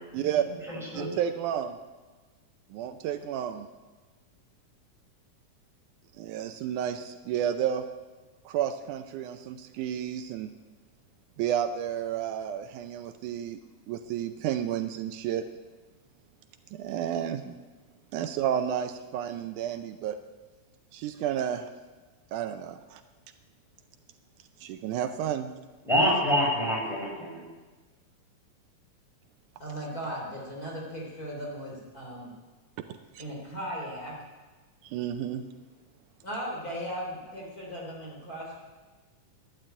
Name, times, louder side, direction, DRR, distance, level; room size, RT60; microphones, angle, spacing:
voice 1, 0.1-0.5 0.9-1.8 2.7-3.7 6.2-7.8 8.5-10.5 11.4-13.6 13.9-15.5 16.7-17.6 18.1-20.2 20.9-21.7 22.3-23.0 24.6-25.5 33.2-33.3 34.8-35.4, right 10 dB, 80° right, 8 dB, 2.1 m, -31 dB
voice 2, 0.7-1.1 25.9-27.4, equal, ahead, -4 dB, 5.6 m, -26 dB
voice 3, 29.6-32.3 33.2-34.1 36.2-38.5, equal, 30° left, -3 dB, 3.9 m, -37 dB
12.0 x 10.5 x 8.7 m, 1.3 s
omnidirectional pair, 3.6 m